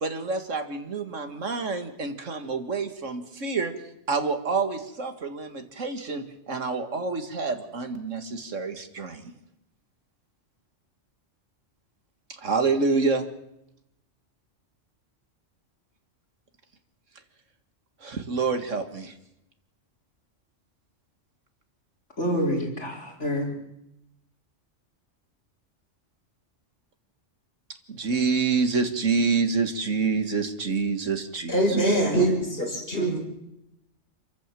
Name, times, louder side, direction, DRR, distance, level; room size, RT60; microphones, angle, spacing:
voice 1, 0.0-3.7 4.1-9.3 12.4-13.2 18.0-19.1 27.9-32.0, right 4 dB, 85° right, 7 dB, 2.3 m, -27 dB
voice 2, 22.2-23.5 32.9-33.1, equal, 70° left, -1 dB, 4.8 m, -28 dB
voice 3, 31.5-33.2, right 1 dB, 50° left, 0 dB, 6.1 m, -23 dB
27.5 x 14.0 x 7.6 m, 0.84 s
omnidirectional pair, 1.3 m